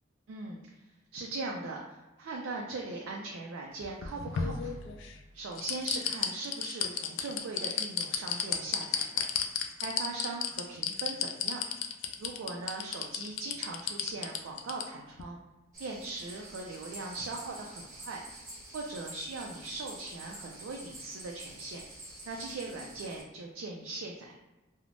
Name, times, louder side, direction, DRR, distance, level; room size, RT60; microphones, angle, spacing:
voice 1, 0.3-0.6 1.1-4.9 5.3-9.2 9.8-11.6 12.2-15.4 15.8-18.2 18.7-21.8 22.2-24.4, right 3 dB, 70° right, -1 dB, 0.3 m, -40 dB
sound 1, 3.8-5.1 5.6-14.8 15.2-15.3, left 8 dB, 65° left, 0.3 m, -32 dB
sound 2, 15.7-23.2, right 1 dB, 40° right, 1.3 m, -48 dB
3.1 x 2.0 x 2.5 m, 1.1 s
head